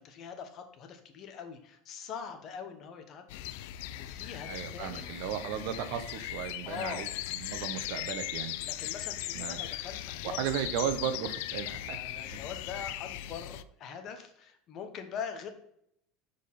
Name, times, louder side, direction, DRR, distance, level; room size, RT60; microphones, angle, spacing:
voice 1, 0.0-3.4 4.0-5.1 6.7-7.1 8.6-10.5 11.6-15.5, left 7 dB, 35° left, 7 dB, 1.1 m, -43 dB
sound 1, 3.3-13.6, left 13 dB, 70° left, 0.4 m, -38 dB
voice 2, 4.5-8.5 9.3-9.6 10.2-12.4, right 9 dB, 60° right, 10 dB, 1.0 m, -35 dB
6.4 x 5.1 x 5.6 m, 0.72 s
cardioid pair, 160°, 0 cm